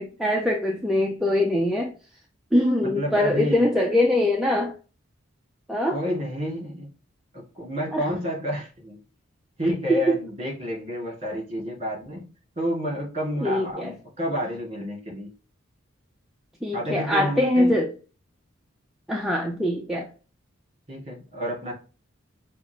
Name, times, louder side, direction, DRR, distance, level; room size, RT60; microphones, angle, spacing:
voice 1, 0.0-1.9 2.5-4.7 5.7-6.0 7.9-8.0 9.9-10.2 13.4-13.9 16.6-17.9 19.1-20.1, left 1 dB, ahead, 0.4 m, -23 dB
voice 2, 3.0-3.7 5.9-6.9 7.3-9.0 9.6-12.3 12.6-15.3 16.7-17.8 20.9-21.7, equal, 30° right, 2.1 m, -29 dB
5.6 x 2.4 x 2.9 m
head